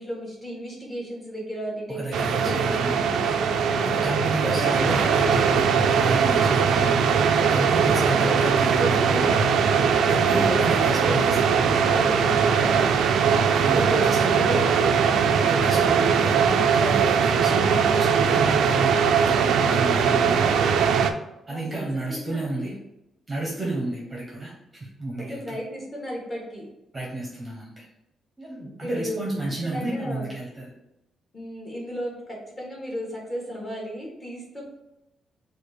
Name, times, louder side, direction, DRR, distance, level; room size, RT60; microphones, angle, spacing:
voice 1, 0.0-4.0 4.4-5.3 6.0-6.4 7.5-10.0 10.2-12.9 13.7-13.9 14.2-15.9 21.5-21.7 22.1-22.7 24.1-24.2 25.3-26.7 28.8-29.2 29.7-30.3 31.3-34.6, equal, 20° left, -3 dB, 1.5 m, -34 dB
voice 2, 1.9-3.0 3.8-6.9 7.5-9.2 10.1-11.6 13.5-14.6 15.5-20.5 21.5-22.8 23.3-25.6 26.9-27.9 28.4-30.7, right 1 dB, 20° right, -3 dB, 0.8 m, -31 dB
sound 1, 2.1-21.1, right 6 dB, 75° right, 0.4 m, -21 dB
4.3 x 2.5 x 4.7 m, 0.88 s
cardioid pair, 165°, 0 cm